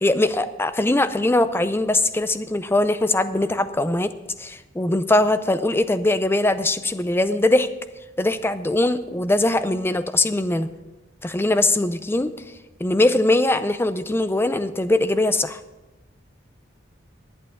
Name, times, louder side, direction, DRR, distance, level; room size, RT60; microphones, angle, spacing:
voice 1, 0.0-4.1 4.4-7.7 8.2-10.7 11.2-12.3 12.8-15.6, left 2 dB, 10° left, 12 dB, 0.5 m, -21 dB
11.0 x 8.8 x 5.8 m, 1.1 s
head